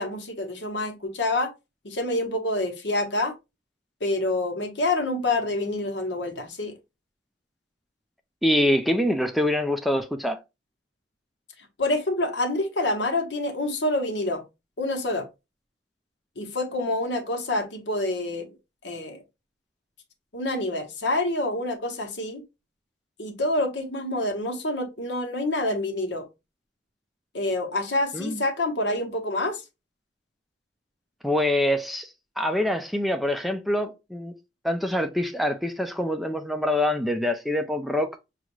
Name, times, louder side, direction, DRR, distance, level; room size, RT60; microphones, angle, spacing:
voice 1, 0.0-1.5 1.8-3.3 4.0-6.7 11.8-14.4 14.8-15.3 16.4-18.5 18.8-19.2 20.3-22.4 23.2-26.2 27.3-29.6, left 2 dB, 65° left, 1.0 m, -27 dB
voice 2, 8.4-10.4 28.1-28.4 31.2-32.1 32.4-34.3 34.6-38.1, left 1 dB, ahead, 0.4 m, -25 dB
6.2 x 2.4 x 3.0 m
head